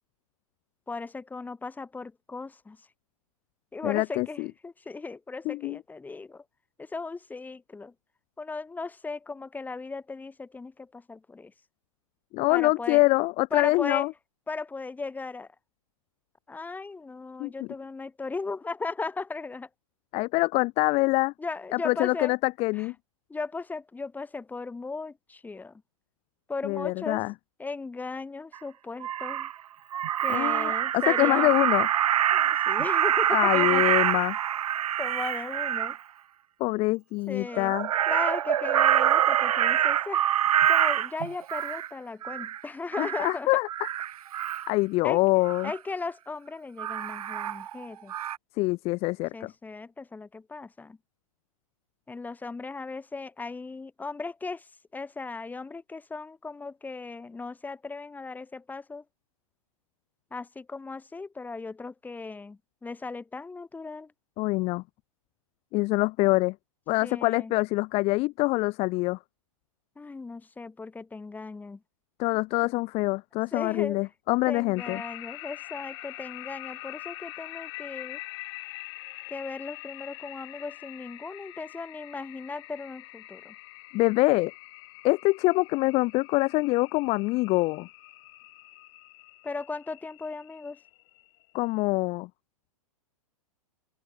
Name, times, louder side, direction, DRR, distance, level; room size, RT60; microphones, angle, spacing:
voice 1, 0.9-2.8 3.7-6.4 6.8-7.9 8.4-11.5 12.5-13.0 13.5-14.1 14.5-15.5 16.5-19.7 21.4-22.3 22.8-22.9 23.3-25.8 26.5-27.2 27.6-29.5 30.2-31.5 32.3-33.8 35.0-36.0 37.3-37.7 38.1-40.2 40.7-43.5 45.0-45.2 45.6-48.1 49.3-51.0 52.1-59.0 60.3-64.1 67.0-67.5 70.0-71.8 73.5-74.0 74.5-78.2 79.3-83.5 89.4-90.8, left 3 dB, 10° left, 2.9 m, -37 dB
voice 2, 3.8-4.5 5.5-5.8 12.3-14.1 17.4-17.5 20.1-21.3 21.7-22.9 26.6-27.3 30.3-31.9 33.3-34.3 36.6-37.9 43.0-43.7 44.7-45.7 48.6-49.5 64.4-64.8 65.7-66.5 66.9-69.2 72.2-75.0 83.9-84.5 85.0-87.9 91.5-92.3, left 22 dB, 30° left, 0.8 m, -25 dB
Crow, 28.5-28.6 29.0-29.5 29.9-36.0 37.5-41.9 42.2-42.6 42.9-43.3 43.7-44.7 45.5-45.8 46.8-47.8 48.1-48.4, right 11 dB, 75° right, 0.6 m, -25 dB
sound 1, 74.8-91.5, left 21 dB, 50° left, 1.6 m, -44 dB
open air
hypercardioid pair, 120°, 19 cm